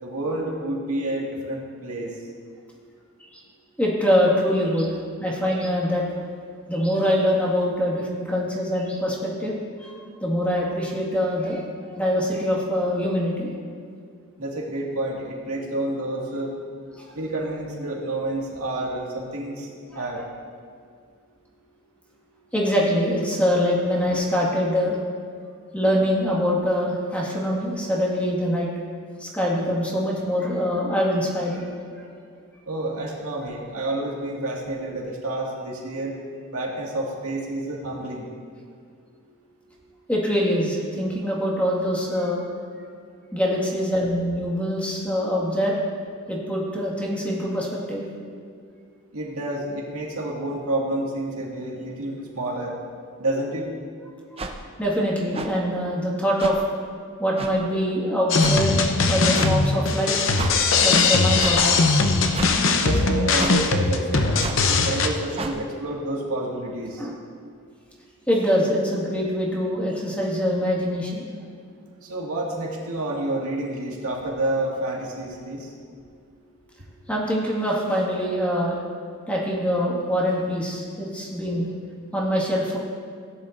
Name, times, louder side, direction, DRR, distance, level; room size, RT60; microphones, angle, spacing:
voice 1, 0.0-2.1 14.4-16.5 17.1-19.7 19.9-20.2 32.7-36.1 36.5-38.3 49.1-52.7 53.2-53.7 62.8-67.1 72.0-75.7, right 1 dB, 85° right, -2 dB, 2.1 m, -29 dB
voice 2, 3.8-6.0 6.7-9.9 10.2-11.6 11.9-13.5 17.0-17.1 22.5-25.0 25.7-28.7 29.2-31.7 40.1-42.4 43.3-45.8 46.3-48.1 54.8-56.6 57.2-60.2 60.8-61.8 67.0-67.1 68.3-71.2 77.1-78.8 79.3-81.7 82.1-82.8, equal, 5° left, -4 dB, 1.8 m, -24 dB
sound 1, 54.4-54.5 55.3-55.5 56.4-56.5 57.4-57.5 58.4-58.6 59.3-59.5 60.3-60.5 61.4-61.6 62.3-62.5 63.4-63.6 64.4-64.6 65.4-65.6, right 3 dB, 25° right, 0.6 m, -30 dB
sound 2, 58.3-65.1, left 3 dB, 60° left, 0.7 m, -20 dB
16.5 x 10.5 x 2.6 m, 2.1 s
head